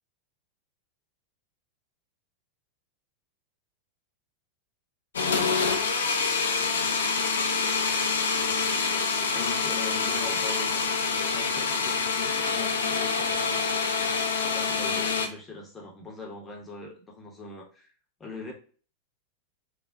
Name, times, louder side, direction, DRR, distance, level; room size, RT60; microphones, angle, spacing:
sound 1, 5.1-15.3, left 4 dB, 65° left, 0.4 m, -26 dB
voice 1, 9.3-10.7 11.3-13.6 14.5-17.9 18.2-18.5, left 3 dB, 15° left, -1 dB, 0.8 m, -41 dB
3.4 x 2.3 x 2.5 m, 0.40 s
figure-of-eight pair, 90°, 0 cm